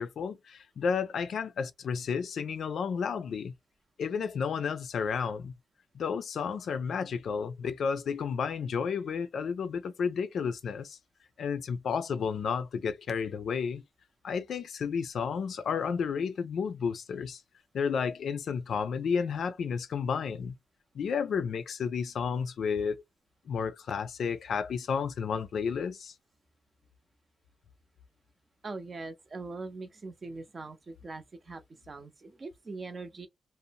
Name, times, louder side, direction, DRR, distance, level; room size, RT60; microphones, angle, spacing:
voice 1, 0.0-3.5 4.0-5.5 5.9-11.0 11.4-13.8 14.2-17.4 17.7-20.5 20.9-23.0 23.5-26.1, left 6 dB, 75° left, 0.4 m, -32 dB
voice 2, 28.6-33.3, right 3 dB, 35° right, 0.6 m, -42 dB
2.6 x 2.0 x 2.7 m
wide cardioid pair, 110°, 0 cm